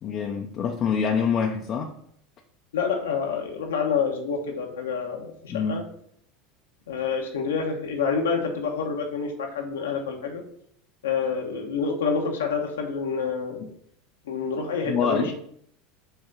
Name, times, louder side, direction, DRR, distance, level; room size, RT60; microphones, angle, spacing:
voice 1, 0.0-1.9 5.5-5.8 13.6-13.7 14.9-15.3, left 6 dB, 45° left, 2 dB, 0.7 m, -26 dB
voice 2, 2.7-5.8 6.9-10.4 11.0-13.6 14.2-15.3, left 5 dB, 85° left, 2 dB, 1.1 m, -27 dB
5.7 x 3.6 x 5.5 m, 0.67 s
hypercardioid pair, 85°, 0 cm